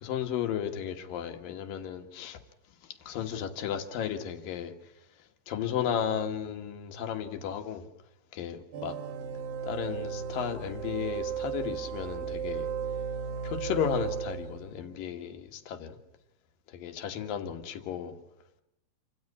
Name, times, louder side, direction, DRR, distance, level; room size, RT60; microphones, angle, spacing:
voice 1, 0.0-2.4 3.1-4.7 5.5-7.8 8.3-8.9 9.6-12.7 13.4-16.0 16.7-18.2, left 8 dB, 80° left, 6 dB, 3.3 m, -34 dB
sound 1, 8.7-14.9, right 7 dB, 85° right, 3.2 m, -35 dB
27.5 x 15.5 x 9.8 m, 0.84 s
omnidirectional pair, 4.0 m